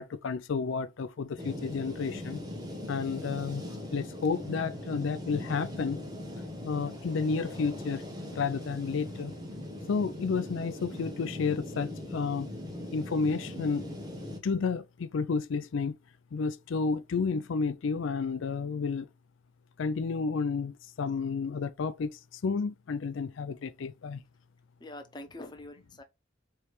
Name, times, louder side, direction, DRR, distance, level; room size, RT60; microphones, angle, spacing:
voice 1, 0.0-2.4 2.9-3.6 3.9-6.0 6.6-8.0 8.3-9.3 9.9-12.5 12.9-13.9 14.4-16.0 16.3-19.1 19.8-24.2, left 5 dB, 70° left, 0.4 m, -31 dB
sound 1, 1.4-14.4, left 1 dB, 20° right, 1.2 m, -40 dB
voice 2, 24.8-26.0, left 1 dB, 20° left, 0.6 m, -44 dB
4.6 x 3.2 x 3.1 m
head